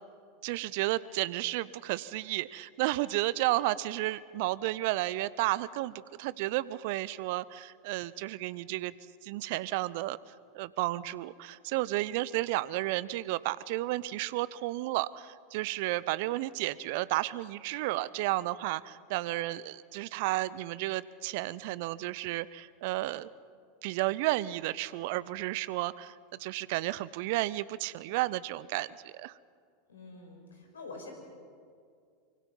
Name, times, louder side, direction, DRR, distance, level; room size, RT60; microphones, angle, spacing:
voice 1, 0.4-8.9 9.2-10.2 10.5-23.3 23.8-29.3, right 17 dB, 55° right, 20 dB, 0.6 m, -32 dB
voice 2, 29.9-31.1, left 3 dB, 75° left, 2 dB, 5.3 m, -46 dB
24.5 x 24.5 x 5.4 m, 2.2 s
figure-of-eight pair, 85°, 0 cm